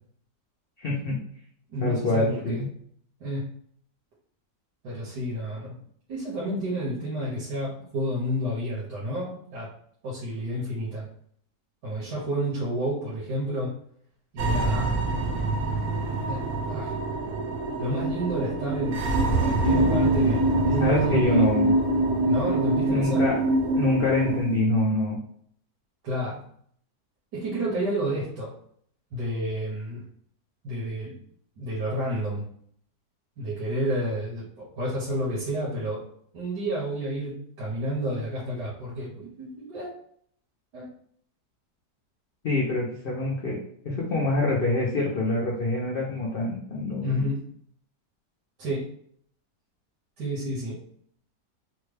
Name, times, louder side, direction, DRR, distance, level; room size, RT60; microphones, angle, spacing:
voice 1, 0.8-1.2 1.8-2.7 20.8-21.7 22.9-23.4 23.7-25.2 42.4-43.6 43.8-47.2, left 2 dB, 60° left, -4 dB, 0.6 m, -25 dB
voice 2, 1.7-2.6 3.2-3.4 4.8-5.8 6.1-9.7 10.0-11.1 11.8-13.7 14.3-15.0 16.2-17.0 17.8-21.5 22.3-23.2 26.0-26.4 27.3-28.5 29.1-30.0 30.6-31.1 31.6-32.5 33.4-36.0 36.3-39.9 40.7-40.9 47.0-47.4 48.6-48.8 50.2-50.8, right 1 dB, 85° right, -7 dB, 1.5 m, -30 dB
sound 1, 14.4-24.4, right 3 dB, 70° right, 0.9 m, -27 dB
sound 2, 19.6-24.6, right 1 dB, 45° right, 0.4 m, -25 dB
3.5 x 2.2 x 3.2 m, 0.64 s
omnidirectional pair, 1.7 m